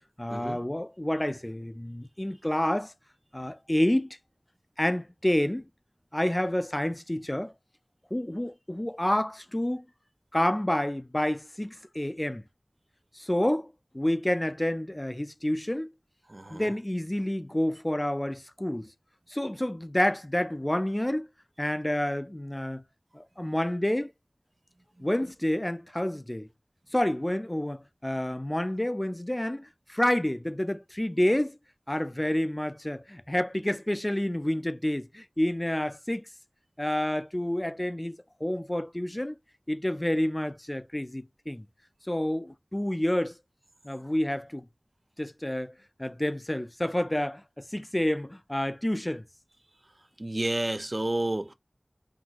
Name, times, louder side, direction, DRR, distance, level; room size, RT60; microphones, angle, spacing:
voice 1, 0.2-2.9 3.3-4.2 4.8-5.7 6.1-7.5 8.1-9.8 10.3-12.4 13.1-15.9 16.5-18.9 19.3-21.3 21.6-22.8 23.1-24.1 25.0-26.5 26.9-31.6 31.9-36.2 36.8-39.4 39.7-41.6 42.1-43.3 43.8-44.6 45.2-45.7 46.0-49.2, left 1 dB, 25° left, 0.5 m, -29 dB
voice 2, 16.3-16.7 25.0-25.1 50.2-51.5, right 1 dB, 50° right, 0.7 m, -30 dB
5.7 x 2.6 x 2.9 m
wide cardioid pair, 45°, 0 cm